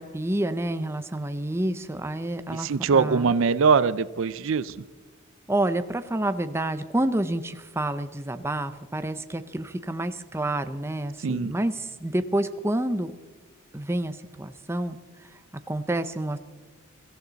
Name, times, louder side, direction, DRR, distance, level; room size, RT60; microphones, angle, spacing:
voice 1, 0.0-3.3 5.5-13.1 13.7-15.0 15.7-16.4, right 1 dB, 10° right, 9 dB, 0.6 m, -28 dB
voice 2, 2.5-4.8 11.2-11.5, right 5 dB, 60° right, 16 dB, 0.4 m, -22 dB
23.5 x 15.0 x 4.0 m, 1.3 s
head